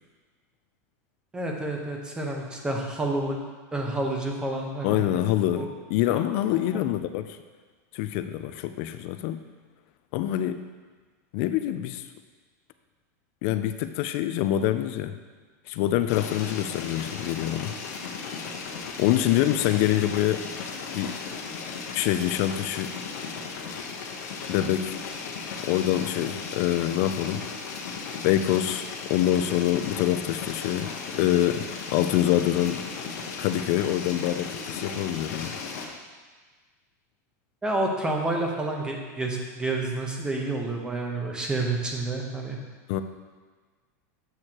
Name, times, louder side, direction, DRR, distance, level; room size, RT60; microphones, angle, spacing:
voice 1, 1.3-3.4 3.7-5.1 5.6-5.7 6.1-6.2 6.5-6.8 37.6-42.6, right 2 dB, 10° right, 1 dB, 0.8 m, -29 dB
voice 2, 4.8-7.4 7.9-9.4 10.1-10.6 11.3-12.0 13.4-15.1 15.7-17.7 19.0-20.4 20.9-21.2 21.9-22.9 24.5-25.0 25.7-27.5 28.2-31.7 31.9-32.9 33.4-35.6 42.9-43.0, left 12 dB, 50° left, 10 dB, 0.4 m, -25 dB
sound 1, 16.1-35.9, left 5 dB, 75° left, 1.0 m, -36 dB
8.1 x 6.3 x 2.9 m, 1.4 s
supercardioid pair, 150°, 9 cm